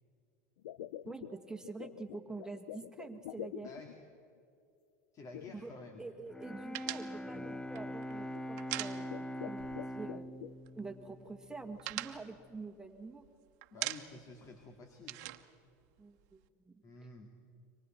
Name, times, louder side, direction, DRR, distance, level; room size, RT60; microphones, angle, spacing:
sound 1, 0.6-4.2 5.3-6.0 6.7-6.8 7.3-7.6 8.2-8.6 8.9-10.5, left 12 dB, 85° left, 0.6 m, -47 dB
voice 1, 1.1-3.7 5.5-5.7 6.0-10.4 10.8-13.2 16.0-16.4 16.7-16.8, right 3 dB, 5° right, 4 dB, 1.9 m, -46 dB
voice 2, 3.6-4.0 5.1-6.0 13.7-15.2 16.8-17.3, left 2 dB, 35° left, 4 dB, 2.3 m, -50 dB
Bowed string instrument, 6.3-12.3, equal, 10° left, 0.7 m, -43 dB
sound 2, 6.7-9.5 9.8-10.0 10.3-10.9 11.3-13.3 13.6-14.4 14.6-16.4, right 19 dB, 70° right, 1.2 m, -42 dB
29.5 x 25.0 x 4.5 m, 2.5 s
supercardioid pair, 115°, 9 cm